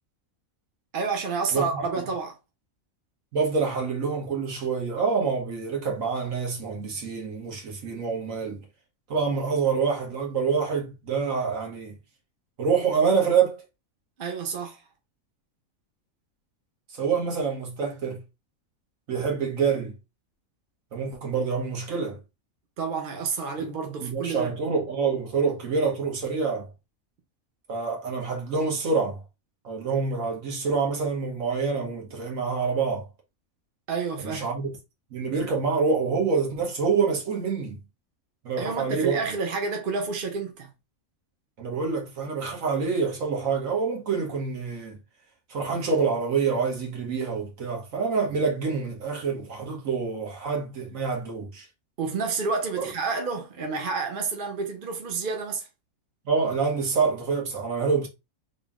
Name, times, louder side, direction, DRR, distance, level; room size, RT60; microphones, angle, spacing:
voice 1, 0.9-2.4 14.2-14.8 22.8-24.5 33.9-34.4 38.6-40.7 52.0-55.7, right 4 dB, 45° right, 0.8 m, -29 dB
voice 2, 3.3-8.6 9.1-11.9 12.6-13.6 16.9-18.2 19.1-19.9 20.9-22.2 24.0-26.7 27.7-29.2 29.6-33.0 34.2-34.7 35.1-37.8 38.4-39.2 41.6-45.0 45.5-51.7 52.8-52.9 56.2-58.1, right 5 dB, 65° right, 1.5 m, -26 dB
3.4 x 2.7 x 3.5 m
omnidirectional pair, 1.5 m